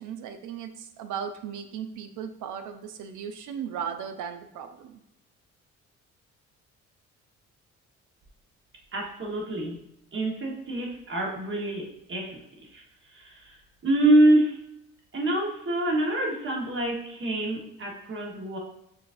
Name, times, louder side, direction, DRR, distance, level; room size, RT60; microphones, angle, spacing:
voice 1, 0.0-5.0, right 7 dB, 80° right, 8 dB, 0.5 m, -36 dB
voice 2, 8.9-9.8 10.1-13.6 13.8-14.6 15.1-18.6, right 1 dB, 40° right, -1 dB, 1.3 m, -26 dB
6.0 x 2.5 x 2.5 m, 0.82 s
cardioid pair, 90°, 30 cm